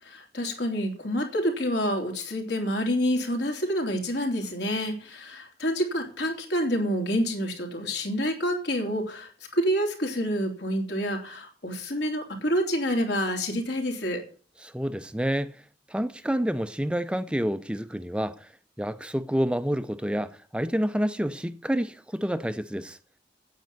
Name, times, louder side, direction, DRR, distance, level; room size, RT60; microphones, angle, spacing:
voice 1, 0.0-14.2, equal, 80° left, 3.4 m, -28 dB
voice 2, 14.6-15.6 15.9-18.5 18.8-23.0, equal, 5° right, 0.5 m, -28 dB
9.4 x 8.7 x 9.3 m
head